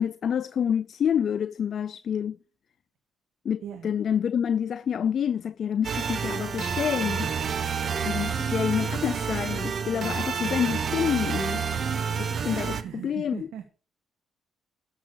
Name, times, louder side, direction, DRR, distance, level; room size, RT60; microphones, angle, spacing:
voice 1, 0.0-2.4 3.4-7.3 8.0-11.6 12.2-13.5, left 8 dB, 55° left, 0.5 m, -28 dB
voice 2, 3.6-3.9 12.7-13.6, right 9 dB, 85° right, 1.6 m, -39 dB
sound 1, 5.8-12.8, right 6 dB, 50° right, 1.2 m, -29 dB
13.5 x 6.2 x 6.3 m
cardioid pair, 90°, 0 cm